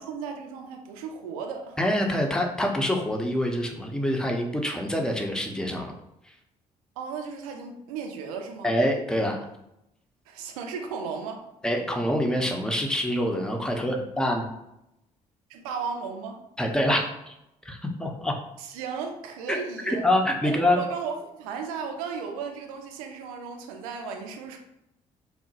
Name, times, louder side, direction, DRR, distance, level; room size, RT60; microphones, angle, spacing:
voice 1, 0.0-1.8 7.0-8.7 10.3-11.4 15.5-16.4 18.6-20.1 20.4-24.6, right 5 dB, 70° right, 3 dB, 0.5 m, -35 dB
voice 2, 1.8-5.9 8.6-9.5 11.6-14.5 16.6-17.3 17.7-18.4 19.5-19.6 19.9-20.8, left 1 dB, 5° left, 2 dB, 0.5 m, -26 dB
2.9 x 2.0 x 2.7 m, 0.85 s
figure-of-eight pair, 45°, 19 cm